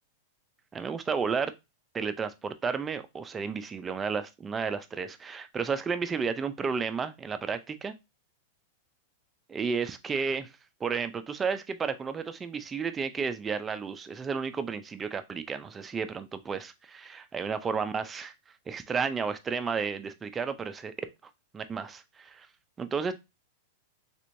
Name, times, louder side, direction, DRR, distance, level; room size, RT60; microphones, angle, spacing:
voice 1, 0.7-1.5 1.9-7.9 9.5-10.5 10.8-18.3 18.7-20.9 21.5-22.5 22.8-23.1, right 5 dB, 15° right, 10 dB, 0.3 m, -32 dB
3.3 x 3.0 x 2.6 m, 0.23 s
supercardioid pair, 135°, 0 cm